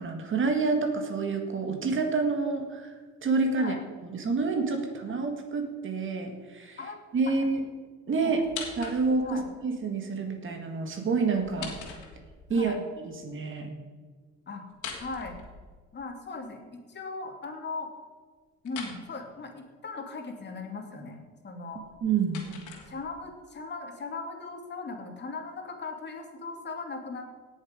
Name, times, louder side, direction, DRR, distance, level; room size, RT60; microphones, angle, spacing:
voice 1, 0.0-2.9 3.2-3.8 4.1-6.8 7.1-7.6 8.1-8.4 8.8-11.7 12.5-12.8 13.2-13.7 22.0-22.4, right 4 dB, 40° right, 5 dB, 2.0 m, -28 dB
sound 1, 8.4-9.4 11.3-12.6 14.7-16.0 18.6-19.0 21.7-23.3, left 6 dB, 80° left, 3.1 m, -42 dB
voice 2, 12.5-12.8 14.5-14.7 15.0-15.4 15.9-17.9 18.6-21.8 22.8-27.3, left 3 dB, 35° left, 3 dB, 2.5 m, -38 dB
18.0 x 7.1 x 5.1 m, 1.5 s
cardioid pair, 105°, 29 cm